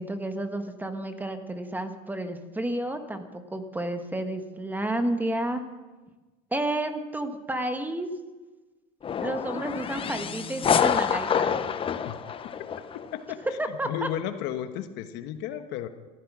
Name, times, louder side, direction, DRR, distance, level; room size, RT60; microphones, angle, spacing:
voice 1, 0.0-5.6 6.5-8.1 9.2-11.5 13.6-14.1, right 1 dB, 10° right, 7 dB, 1.4 m, -31 dB
sound 1, 9.0-13.1, left 7 dB, 30° left, 0.9 m, -27 dB
voice 2, 13.8-15.9, left 11 dB, 65° left, 9 dB, 1.2 m, -33 dB
14.5 x 14.0 x 6.2 m, 1.2 s
supercardioid pair, 110°, 19 cm